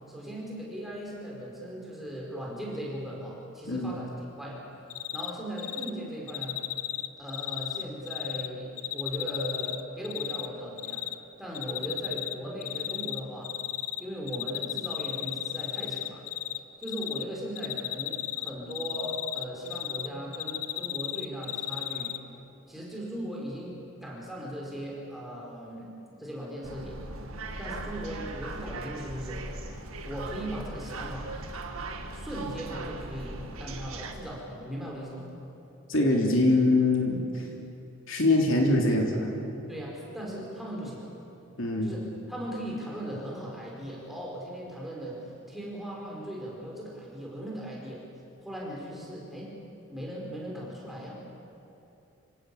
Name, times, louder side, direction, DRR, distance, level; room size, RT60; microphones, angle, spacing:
voice 1, 0.1-4.1 4.4-4.6 5.1-6.6 7.2-11.0 11.4-13.6 14.0-16.2 16.8-22.2 22.7-27.0 27.6-29.4 30.0-31.3 32.1-35.3 39.7-41.1 41.8-48.0 48.4-49.6 49.9-51.2, equal, ahead, -4 dB, 4.8 m, -38 dB
Cricket, 4.9-5.3 5.6-5.9 6.3-8.5 8.8-10.5 10.8-11.1 11.5-12.3 12.6-14.0 14.3-16.6 16.8-17.2 17.6-20.1 20.3-22.2, left 14 dB, 85° left, 0.9 m, -33 dB
sound 1, 26.6-34.1, right 2 dB, 80° right, 2.1 m, -39 dB
voice 2, 35.9-37.4 38.1-39.3 41.6-41.9, left 2 dB, 65° left, 0 dB, 3.3 m, -23 dB
27.0 x 17.0 x 8.5 m, 2.8 s
head